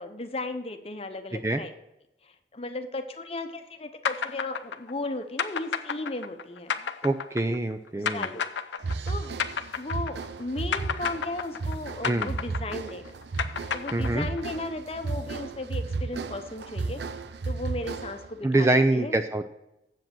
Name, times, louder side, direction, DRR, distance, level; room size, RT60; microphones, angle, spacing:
voice 1, 0.0-1.7 2.2-6.9 8.0-8.4 9.1-9.4 9.7-13.1 13.7-17.0 17.5-19.2, left 2 dB, 35° left, 7 dB, 0.8 m, -36 dB
sound 1, 4.0-10.4 10.7-14.6, left 7 dB, 80° left, 0.6 m, -31 dB
voice 2, 7.0-8.3 12.0-12.3 13.9-14.3 18.4-19.5, right 2 dB, 15° right, 8 dB, 0.4 m, -25 dB
sound 2, 8.8-18.4, right 3 dB, 70° right, 0.5 m, -34 dB
7.7 x 7.4 x 6.0 m, 0.88 s
head